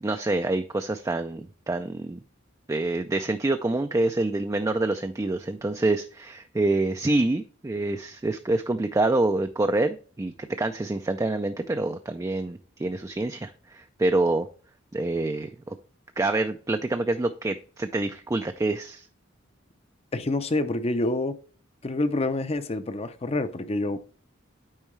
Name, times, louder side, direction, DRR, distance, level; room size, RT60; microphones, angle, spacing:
voice 1, 0.0-2.2 2.7-10.3 10.6-14.5 14.9-15.8 16.2-19.1, right 2 dB, 15° right, 0.4 m, -26 dB
voice 2, 20.1-21.4 21.8-24.0, left 2 dB, 30° left, 0.6 m, -27 dB
8.8 x 4.6 x 3.1 m
head